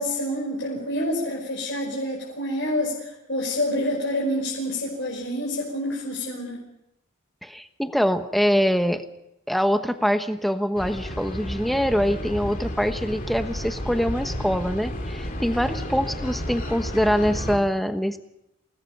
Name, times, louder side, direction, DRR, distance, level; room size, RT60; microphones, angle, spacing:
voice 1, 0.0-6.7, left 1 dB, 55° left, -4 dB, 5.8 m, -27 dB
voice 2, 7.4-9.0 9.5-18.2, equal, ahead, 7 dB, 1.1 m, -24 dB
sound 1, 10.8-17.6, equal, 40° left, 3.1 m, -32 dB
28.5 x 19.0 x 5.4 m, 0.84 s
head